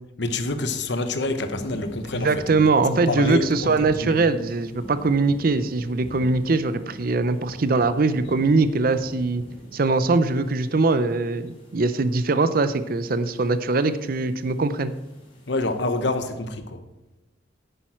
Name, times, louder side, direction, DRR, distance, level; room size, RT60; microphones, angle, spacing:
voice 1, 0.2-3.7 4.0-4.2 15.5-16.8, left 2 dB, 65° left, 8 dB, 1.0 m, -27 dB
sound 1, 0.9-16.3, equal, 30° left, 2.9 m, -44 dB
voice 2, 2.1-9.4 9.7-14.9, right 3 dB, 50° right, 12 dB, 0.5 m, -22 dB
10.0 x 8.9 x 4.4 m, 1.0 s
head